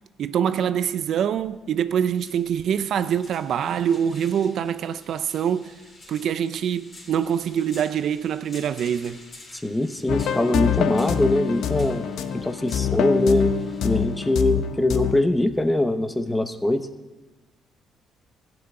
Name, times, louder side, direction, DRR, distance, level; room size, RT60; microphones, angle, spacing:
voice 1, 0.2-5.8 6.1-9.2, right 8 dB, 65° right, 0.5 m, -25 dB
sound 1, 1.3-16.0, left 2 dB, 35° left, 3.2 m, -50 dB
voice 2, 9.5-13.5 13.8-16.9, left 1 dB, 10° left, 0.9 m, -23 dB
sound 2, 10.1-15.1, left 8 dB, 70° left, 0.8 m, -25 dB
13.0 x 6.1 x 8.7 m
cardioid pair, 80°, 0 cm